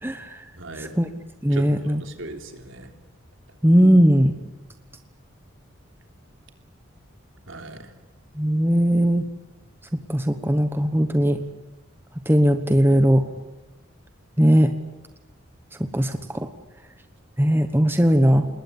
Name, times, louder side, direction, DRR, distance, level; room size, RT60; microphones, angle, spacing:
voice 1, 0.0-0.4 0.8-1.1 1.4-2.0 3.6-4.3 8.4-9.2 10.1-11.4 12.3-13.2 14.4-14.7 15.9-16.5 17.4-18.5, equal, 10° right, 8 dB, 1.1 m, -18 dB
voice 2, 0.5-0.9 1.5-2.9 7.5-7.9, right 1 dB, 70° right, 5 dB, 3.3 m, -38 dB
27.5 x 21.0 x 8.7 m, 1.0 s
head